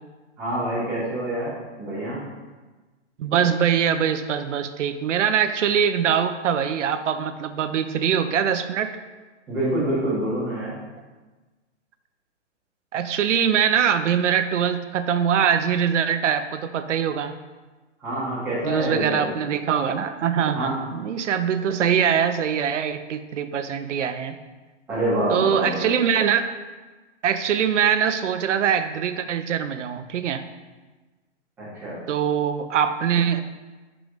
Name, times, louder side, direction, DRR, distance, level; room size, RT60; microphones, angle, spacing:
voice 1, 0.4-1.5 1.8-2.2 9.5-10.7 18.0-19.3 20.5-20.9 24.9-25.9 31.6-32.0, right 1 dB, 5° right, -11 dB, 1.4 m, -26 dB
voice 2, 3.2-9.0 12.9-17.3 18.6-24.4 25.3-26.5 27.2-30.4 32.1-33.4, right 8 dB, 75° right, 10 dB, 0.6 m, -23 dB
5.1 x 4.8 x 3.8 m, 1.3 s
hypercardioid pair, 170°, 36 cm